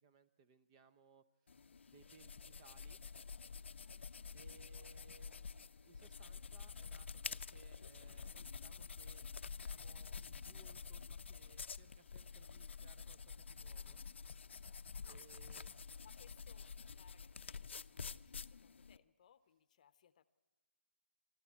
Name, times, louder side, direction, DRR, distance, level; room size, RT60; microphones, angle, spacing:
voice 1, 0.0-3.0 4.3-14.0 15.0-15.9, right 5 dB, 20° right, 12 dB, 0.5 m, -66 dB
sound 1, 1.5-19.0, left 5 dB, 65° left, 0.6 m, -49 dB
voice 2, 16.0-20.2, left 9 dB, 35° left, 14 dB, 0.8 m, -68 dB
24.0 x 13.0 x 8.3 m, 1.2 s
hypercardioid pair, 165°, 7 cm